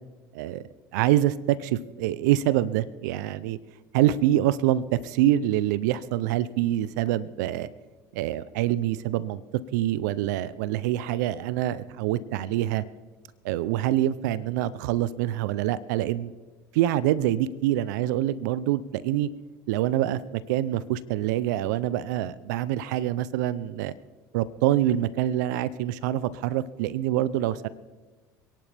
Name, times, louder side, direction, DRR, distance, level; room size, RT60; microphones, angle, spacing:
voice 1, 0.9-3.6 3.9-7.7 8.1-9.4 9.7-12.8 13.4-16.3 16.7-19.3 19.7-23.9 24.3-27.7, right 13 dB, 75° right, 18 dB, 0.6 m, -25 dB
27.5 x 11.0 x 3.5 m, 1.2 s
hypercardioid pair, 75°, 10 cm